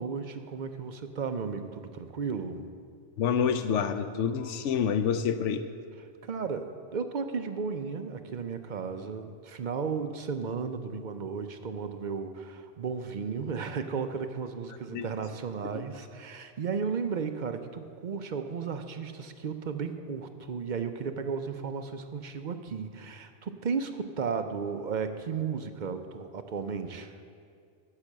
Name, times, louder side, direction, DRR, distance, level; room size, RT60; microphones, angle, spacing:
voice 1, 0.0-2.7 6.2-27.1, right 5 dB, 50° right, 7 dB, 0.6 m, -34 dB
voice 2, 3.2-5.6 14.9-15.0 15.7-15.8, left 7 dB, 80° left, 10 dB, 0.9 m, -27 dB
9.8 x 6.6 x 7.3 m, 2.2 s
omnidirectional pair, 1.2 m